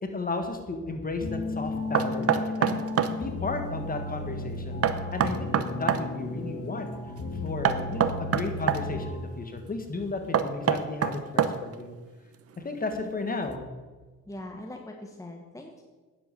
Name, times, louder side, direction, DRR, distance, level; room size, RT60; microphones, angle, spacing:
voice 1, 0.0-2.8 3.2-4.8 5.1-7.0 7.4-12.0 12.6-13.7, left 3 dB, 30° left, 5 dB, 1.7 m, -34 dB
sound 1, 1.2-9.3, left 2 dB, 60° left, 2.3 m, -34 dB
Knock, 1.9-3.2 4.8-6.1 7.6-8.8 10.3-11.8, right 8 dB, 50° right, 0.8 m, -25 dB
voice 2, 14.3-15.8, left 1 dB, 10° left, 2 dB, 1.2 m, -41 dB
9.6 x 7.7 x 6.9 m, 1.3 s
cardioid pair, 90°, 30 cm